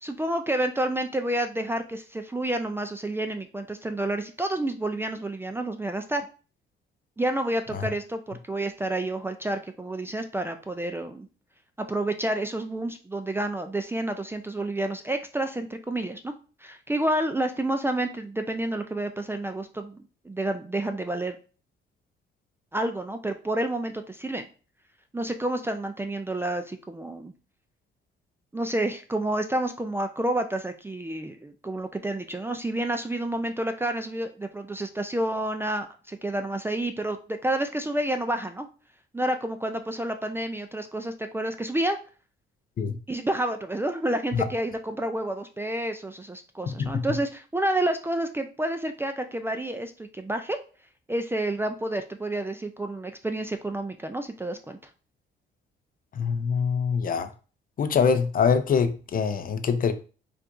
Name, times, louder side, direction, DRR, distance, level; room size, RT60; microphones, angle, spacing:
voice 1, 0.0-6.3 7.2-11.3 11.9-16.4 16.6-21.4 22.7-24.5 25.1-27.3 28.5-38.7 39.1-42.0 43.1-50.6 51.1-54.8, right 1 dB, 10° right, 0.3 m, -29 dB
voice 2, 56.2-57.3 57.8-59.9, left 6 dB, 45° left, 0.5 m, -24 dB
4.5 x 2.4 x 2.6 m
cardioid pair, 90°, 20 cm